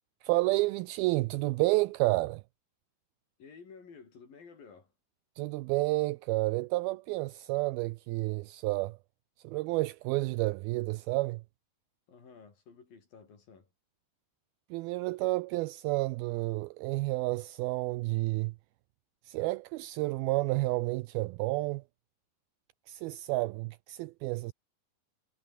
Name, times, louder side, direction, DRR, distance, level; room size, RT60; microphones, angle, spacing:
voice 1, 0.2-2.4 5.4-9.0 9.4-11.4 14.7-18.6 19.3-21.8 22.9-24.5, right 21 dB, 85° right, 2.3 m, -30 dB
voice 2, 3.4-4.9 12.1-13.7, left 5 dB, 60° left, 7.1 m, -53 dB
omnidirectional pair, 4.7 m